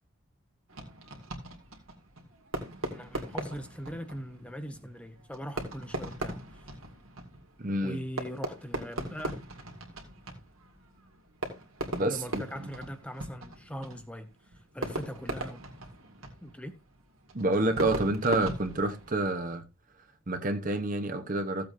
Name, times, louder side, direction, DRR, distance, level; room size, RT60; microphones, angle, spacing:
Fireworks, 0.7-19.5, right 1 dB, 75° right, 2.2 m, -40 dB
voice 1, 2.9-6.6 7.8-9.4 12.1-15.6 16.4-16.8, equal, 5° left, 0.8 m, -41 dB
voice 2, 7.6-8.0 11.9-12.7 17.3-19.6 20.3-21.7, right 2 dB, 40° right, 0.9 m, -28 dB
15.5 x 7.7 x 2.7 m
head